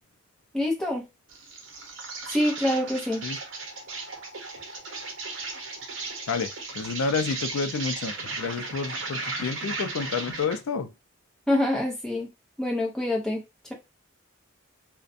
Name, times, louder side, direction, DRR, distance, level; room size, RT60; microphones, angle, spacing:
voice 1, 0.5-1.0 2.3-3.2 11.5-12.3 12.6-13.4, left 1 dB, 5° left, 0.6 m, -25 dB
Insect, 1.3-10.7, right 3 dB, 70° right, 0.7 m, -36 dB
voice 2, 6.3-10.9, left 5 dB, 85° left, 0.4 m, -30 dB
2.4 x 2.1 x 2.4 m
head